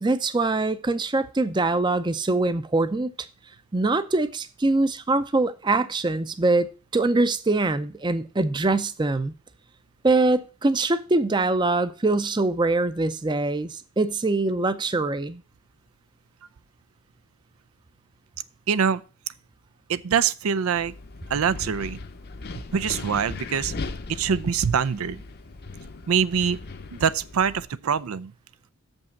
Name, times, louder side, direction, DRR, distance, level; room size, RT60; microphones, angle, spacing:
voice 1, 0.0-3.1 3.7-9.3 10.0-15.4, right 2 dB, 20° right, 0.5 m, -23 dB
voice 2, 18.7-19.0 19.9-20.9 21.3-22.0 22.7-23.7 24.1-25.2 26.1-26.6 26.9-28.3, right 7 dB, 90° right, 0.5 m, -24 dB
Wind, 20.8-27.6, left 3 dB, 45° left, 0.7 m, -38 dB
6.8 x 5.4 x 7.0 m
head